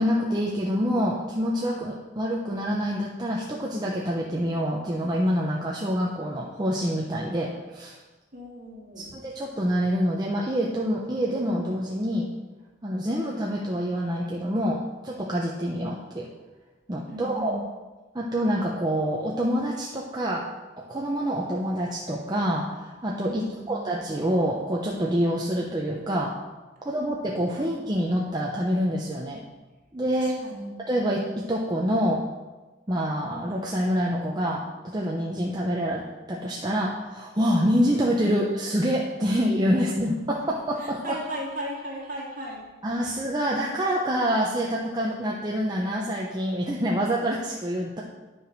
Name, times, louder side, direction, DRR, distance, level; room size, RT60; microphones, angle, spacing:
voice 1, 0.0-8.0 9.0-12.3 12.8-16.3 16.9-17.6 18.1-20.5 20.8-26.4 26.8-29.4 29.9-30.4 30.8-32.3 32.9-41.2 42.8-48.0, equal, 20° right, -3 dB, 0.8 m, -26 dB
voice 2, 8.3-9.1 17.1-17.6 23.3-23.7 30.1-30.7 40.8-42.7, equal, 45° right, -3 dB, 2.6 m, -36 dB
9.9 x 5.1 x 6.0 m, 1.2 s
head